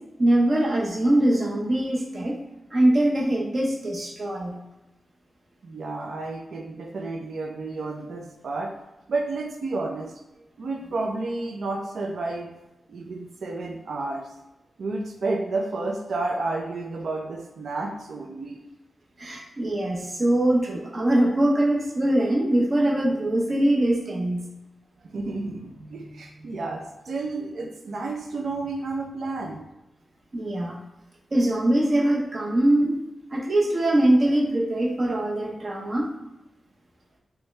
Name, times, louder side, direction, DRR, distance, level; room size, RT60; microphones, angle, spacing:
voice 1, 0.2-2.4 2.7-4.6 19.2-24.4 30.3-30.8 31.3-33.0 33.3-36.1, right 1 dB, 35° right, -1 dB, 0.7 m, -22 dB
voice 2, 5.6-8.7 9.1-12.5 12.9-14.2 14.8-18.6 25.0-29.6, right 3 dB, 70° right, 2 dB, 0.5 m, -31 dB
3.4 x 3.1 x 3.2 m, 0.96 s
wide cardioid pair, 175°, 0 cm